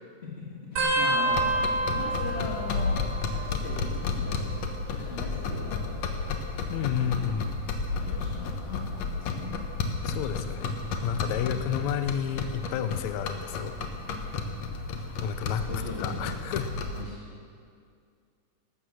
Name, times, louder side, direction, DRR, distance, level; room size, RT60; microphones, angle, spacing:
voice 1, 0.7-4.6 4.9-6.1 6.9-9.5 11.2-11.6 15.7-16.3 16.9-17.2, left 3 dB, 30° left, -5 dB, 1.2 m, -39 dB
sound 1, 0.8-3.9 4.2-4.8 5.8-7.3 7.9-8.2 9.5-9.8 11.3-11.4, right 2 dB, 70° right, 5.0 m, -31 dB
sound 2, 1.3-17.0, left 4 dB, 65° left, 1.9 m, -32 dB
voice 2, 6.7-7.5 10.0-10.7 11.0-13.8 15.2-15.7 16.0-16.7, left 9 dB, 80° left, 9 dB, 1.6 m, -31 dB
15.0 x 12.5 x 6.4 m, 2.3 s
omnidirectional pair, 4.1 m